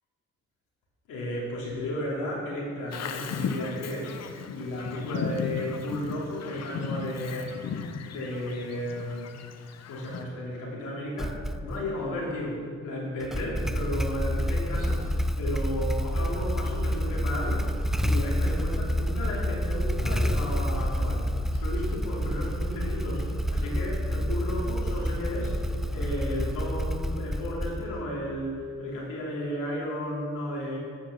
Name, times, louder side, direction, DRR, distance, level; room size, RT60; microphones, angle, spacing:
voice 1, 1.1-4.2 4.5-7.6 8.0-9.3 9.9-17.7 18.0-30.8, left 1 dB, 85° left, -4 dB, 2.8 m, -34 dB
Bird vocalization bird call bird song, 2.9-10.2, left 6 dB, 60° left, 0.8 m, -36 dB
Motorcycle / Engine starting, 11.2-11.9 13.2-28.1, equal, ahead, 0.4 m, -28 dB
10.0 x 5.8 x 7.0 m, 2.2 s
cardioid pair, 90°, 30 cm